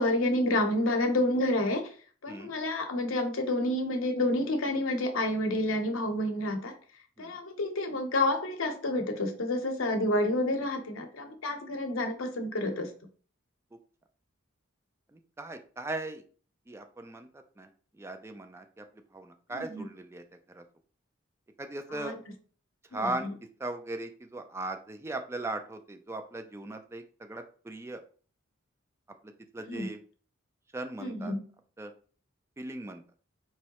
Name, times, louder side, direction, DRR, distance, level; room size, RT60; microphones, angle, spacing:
voice 1, 0.0-1.9 2.2-6.7 7.2-12.9 19.5-19.9 21.9-22.2 22.9-23.3 29.7-29.9 31.0-31.4, left 1 dB, 65° left, 5 dB, 0.8 m, -29 dB
voice 2, 15.1-16.2 16.7-17.3 17.6-17.7 18.0-18.8 19.1-20.2 20.5-20.6 21.6-22.1 22.9-23.3 23.6-28.0 29.2-30.0 30.7-31.3 31.8-31.9 32.6-33.0, right 2 dB, 10° right, 6 dB, 0.3 m, -38 dB
4.5 x 3.1 x 2.9 m, 0.41 s
head